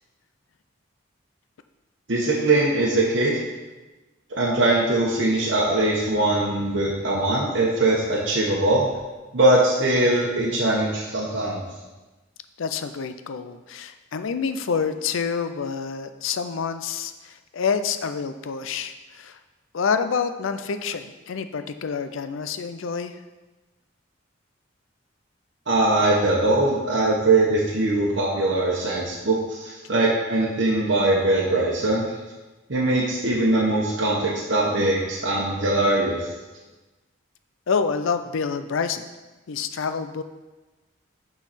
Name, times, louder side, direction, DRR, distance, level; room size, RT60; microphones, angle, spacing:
voice 1, 2.1-3.4 4.4-8.8 9.3-11.6 25.7-32.0 32.7-36.3, right 2 dB, 60° right, -5 dB, 1.1 m, -21 dB
voice 2, 12.6-19.4 19.7-23.2 37.7-39.1 39.5-40.2, left 5 dB, 75° left, 10 dB, 0.5 m, -27 dB
8.8 x 4.0 x 4.2 m, 1.2 s
head